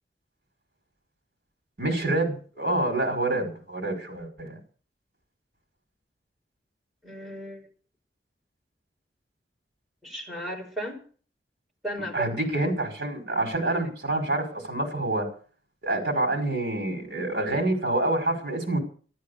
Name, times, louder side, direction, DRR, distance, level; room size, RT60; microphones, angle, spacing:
voice 1, 1.8-4.6 12.1-15.3 15.8-18.8, right 2 dB, 60° right, 4 dB, 5.4 m, -27 dB
voice 2, 7.0-7.7 10.0-11.0 11.8-12.3, right 1 dB, ahead, -3 dB, 4.8 m, -35 dB
13.5 x 11.5 x 6.8 m, 0.42 s
head